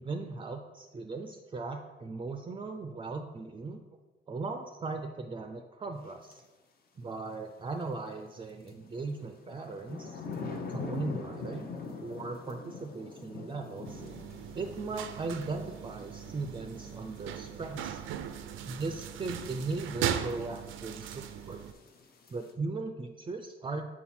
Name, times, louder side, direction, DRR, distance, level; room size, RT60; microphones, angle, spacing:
voice 1, 0.0-3.8 4.3-6.4 7.0-10.2 10.7-11.7 12.0-14.0 14.5-18.0 18.7-21.6 22.3-23.9, right 3 dB, 25° right, 5 dB, 0.4 m, -38 dB
sound 1, 6.3-6.4 8.7-22.5, left 4 dB, 50° left, 0.8 m, -44 dB
sound 2, 13.8-21.7, right 9 dB, 85° right, 0.4 m, -38 dB
5.7 x 4.3 x 4.3 m, 1.2 s
cardioid pair, 90°, 20 cm